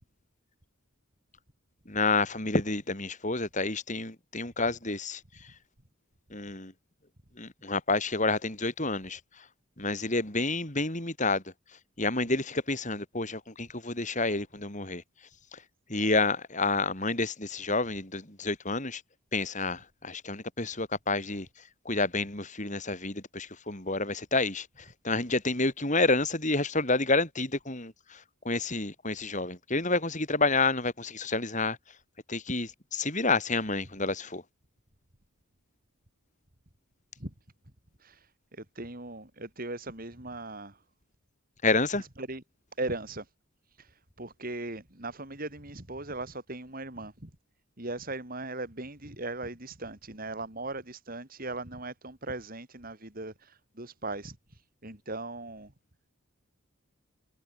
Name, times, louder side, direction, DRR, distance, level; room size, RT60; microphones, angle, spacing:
voice 1, 1.9-5.2 6.3-6.7 7.4-9.4 9.8-11.4 12.0-15.0 15.5-15.6 15.9-19.0 19.3-21.5 21.8-31.8 32.3-34.4 41.6-42.0, left 3 dB, 35° left, 4.6 m, -29 dB
voice 2, 38.6-40.7 42.2-42.4 42.8-43.2 44.2-47.3 47.8-53.3 53.8-54.4 54.8-55.7, right 2 dB, 40° right, 3.5 m, -38 dB
head